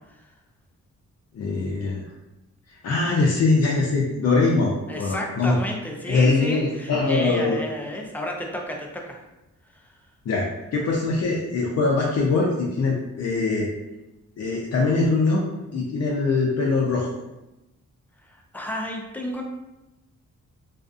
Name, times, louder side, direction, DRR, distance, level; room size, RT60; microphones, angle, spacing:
voice 1, 1.3-2.0 2.7-5.6 6.0-7.6 10.3-10.5 10.7-13.7 14.4-15.4 15.7-17.1, left 3 dB, 55° left, -3 dB, 0.5 m, -22 dB
voice 2, 4.9-9.2 9.7-9.8 18.5-19.4, left 1 dB, 5° left, 0 dB, 0.4 m, -32 dB
2.4 x 2.4 x 2.4 m, 0.97 s
cardioid pair, 85°, 30 cm